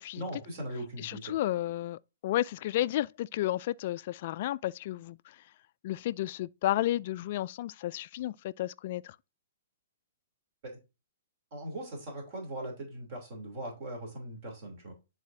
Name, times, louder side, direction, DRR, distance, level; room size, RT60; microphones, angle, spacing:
voice 1, 0.2-1.3 11.5-14.9, right 1 dB, 40° right, 3.0 m, -40 dB
voice 2, 1.0-5.4 5.8-9.2, left 14 dB, 45° left, 0.3 m, -32 dB
10.5 x 4.1 x 2.7 m
hypercardioid pair, 155°, 0 cm